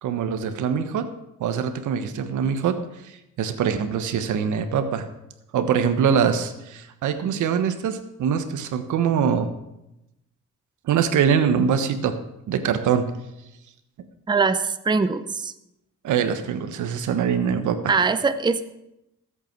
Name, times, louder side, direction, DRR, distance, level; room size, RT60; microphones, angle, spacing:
voice 1, 0.0-1.1 1.4-2.8 3.4-5.1 5.5-9.5 10.8-12.2 12.5-13.1 16.0-17.9, right 7 dB, 80° right, 9 dB, 1.3 m, -23 dB
voice 2, 14.3-15.5 17.9-18.6, right 4 dB, 15° right, 11 dB, 0.7 m, -22 dB
20.0 x 8.2 x 4.6 m, 0.89 s
cardioid pair, 90°, 30 cm